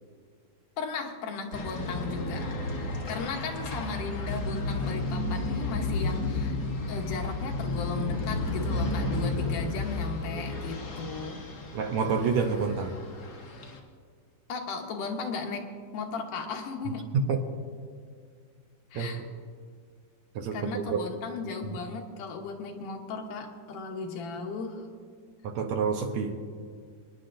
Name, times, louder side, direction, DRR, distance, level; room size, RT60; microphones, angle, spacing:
voice 1, 0.8-6.6 6.9-11.4 14.5-15.7 15.9-17.1 18.9-19.2 20.5-24.8, left 4 dB, 80° left, 2 dB, 2.6 m, -36 dB
sound 1, 1.5-13.8, left 2 dB, 60° left, 1.0 m, -32 dB
voice 2, 11.7-13.0 17.3-17.4 18.9-19.1 20.4-21.1 21.7-21.8 25.4-26.4, right 6 dB, 70° right, 4 dB, 1.9 m, -28 dB
27.0 x 10.0 x 2.6 m, 2.1 s
omnidirectional pair, 3.7 m